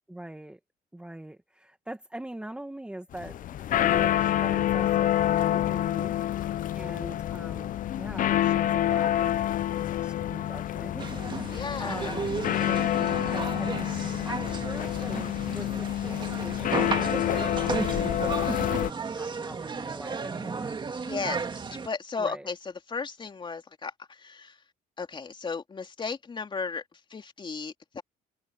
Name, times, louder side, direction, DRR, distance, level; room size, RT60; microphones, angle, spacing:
voice 1, 0.1-0.6 0.9-6.2 6.7-9.3 9.7-12.3 12.6-20.8 22.2-22.5, right 1 dB, 5° right, 1.6 m, -42 dB
sound 1, 3.1-18.9, left 12 dB, 50° left, 0.7 m, -27 dB
sound 2, 11.0-21.9, right 5 dB, 30° right, 2.2 m, -34 dB
voice 2, 11.5-12.3 21.1-24.6 25.0-28.0, left 5 dB, 30° left, 3.3 m, -35 dB
cardioid pair, 110°, 17 cm